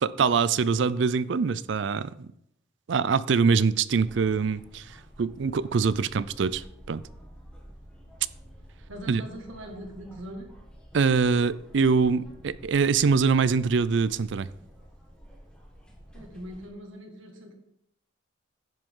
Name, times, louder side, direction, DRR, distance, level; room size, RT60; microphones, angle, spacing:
voice 1, 0.0-2.3 2.9-7.0 9.1-9.2 10.9-14.5, right 5 dB, 70° right, 0.4 m, -24 dB
sound 1, 3.9-16.7, equal, 5° left, 1.4 m, -50 dB
voice 2, 8.9-10.5 16.1-17.5, equal, 90° right, 1.9 m, -41 dB
10.5 x 7.7 x 3.7 m
head